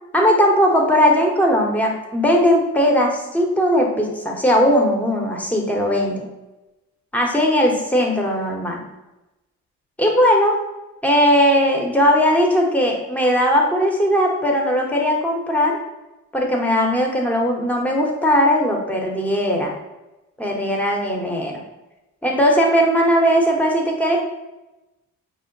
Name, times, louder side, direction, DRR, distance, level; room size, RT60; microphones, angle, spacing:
voice 1, 0.1-6.2 7.1-8.8 10.0-10.6 11.0-15.8 16.3-19.7 20.4-21.6 22.2-24.2, equal, 5° left, 0 dB, 0.9 m, -18 dB
5.0 x 2.1 x 3.8 m, 1.0 s
cardioid pair, 90°, 30 cm